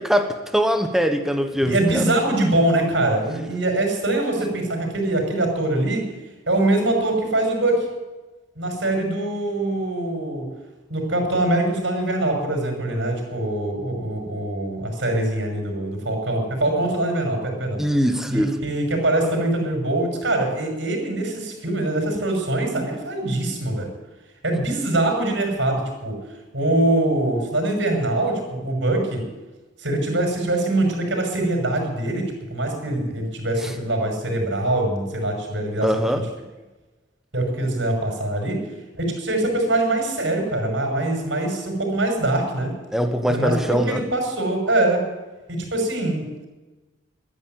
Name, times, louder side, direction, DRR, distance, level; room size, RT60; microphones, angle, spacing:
voice 1, 0.0-2.0 17.8-18.5 35.8-36.2 42.9-44.0, equal, ahead, 7 dB, 1.2 m, -22 dB
voice 2, 1.6-6.1 6.5-7.9 8.6-10.5 10.9-17.8 18.3-23.9 24.4-26.2 26.5-29.3 29.8-36.0 37.3-38.6 39.0-42.7 43.3-45.1 45.5-46.5, right 1 dB, 75° right, 2 dB, 5.9 m, -23 dB
13.0 x 10.5 x 9.3 m, 1.2 s
head